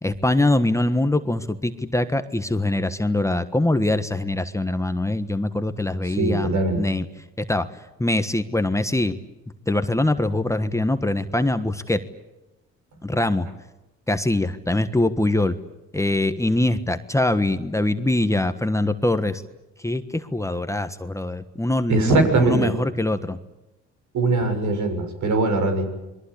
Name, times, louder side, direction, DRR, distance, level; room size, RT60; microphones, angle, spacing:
voice 1, 0.0-7.1 7.5-9.1 9.7-12.0 13.0-13.5 14.1-15.6 15.9-19.4 19.8-23.4, left 1 dB, 10° left, 9 dB, 1.4 m, -23 dB
voice 2, 6.1-6.8 21.9-22.7 24.1-25.8, right 3 dB, 70° right, 6 dB, 6.6 m, -21 dB
27.5 x 22.0 x 8.6 m, 0.99 s
cardioid pair, 90°, 30 cm